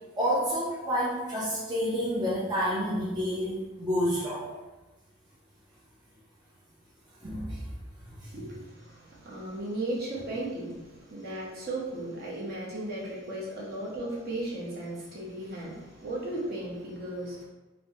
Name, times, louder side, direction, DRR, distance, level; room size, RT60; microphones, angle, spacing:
voice 1, 0.2-4.4 7.2-7.6 8.0-8.3, equal, 20° right, -8 dB, 0.4 m, -29 dB
voice 2, 8.2-17.5, right 1 dB, 45° right, -6 dB, 0.8 m, -36 dB
3.2 x 2.0 x 2.7 m, 1.2 s
head